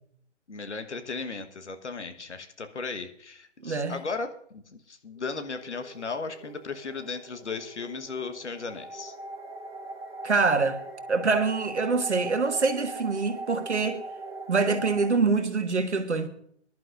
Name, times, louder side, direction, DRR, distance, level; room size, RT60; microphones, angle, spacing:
voice 1, 0.5-9.2, left 4 dB, 70° left, 1.4 m, -36 dB
voice 2, 3.6-4.0 10.2-10.8 11.1-14.0 14.5-16.3, right 4 dB, 70° right, 1.6 m, -25 dB
sound 1, 5.2-15.2, right 2 dB, 55° right, 2.2 m, -41 dB
23.0 x 11.0 x 2.5 m
figure-of-eight pair, 145°, 36 cm